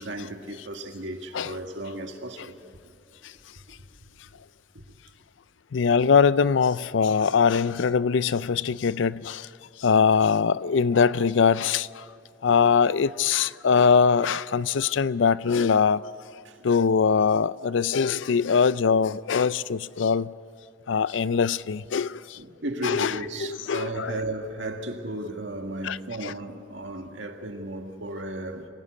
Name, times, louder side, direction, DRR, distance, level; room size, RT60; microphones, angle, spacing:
voice 1, 0.0-2.6 4.7-4.8 12.5-12.6 16.5-16.7 22.4-28.7, right 1 dB, 65° right, 1.9 m, -35 dB
voice 2, 5.7-9.5 9.8-12.0 12.4-16.0 16.6-20.3 20.9-22.4 22.8-23.1 23.4-24.2 25.8-26.3, left 6 dB, 75° left, 0.4 m, -22 dB
25.5 x 17.0 x 8.3 m
head